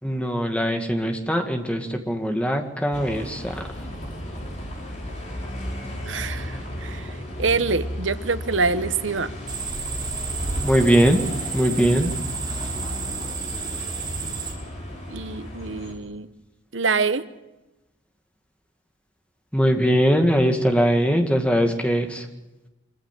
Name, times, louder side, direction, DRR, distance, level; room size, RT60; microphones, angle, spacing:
voice 1, 0.0-3.7 10.6-11.2 11.5-12.1 19.5-22.3, equal, 5° left, 4 dB, 2.0 m, -21 dB
Bus, 2.9-15.9, equal, 40° left, 5.4 m, -34 dB
voice 2, 6.0-9.3 15.1-16.3 16.7-17.2, right 4 dB, 85° right, 13 dB, 1.0 m, -25 dB
sound 1, 9.5-14.5, right 4 dB, 20° right, 3.8 m, -31 dB
25.0 x 15.0 x 9.2 m, 1.0 s
head